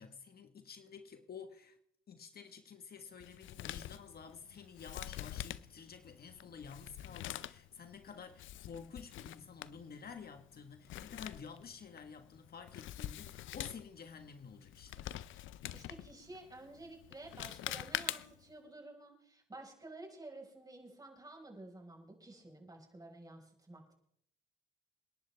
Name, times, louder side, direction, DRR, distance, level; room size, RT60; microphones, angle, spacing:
voice 1, 0.0-1.8 2.1-15.1, left 6 dB, 50° left, 1.5 m, -51 dB
Male speech man speaking, 3.2-18.5, left 13 dB, 75° left, 0.6 m, -46 dB
voice 2, 15.7-23.9, right 2 dB, 20° right, 5.1 m, -52 dB
27.5 x 11.0 x 3.5 m
cardioid pair, 90°, 20 cm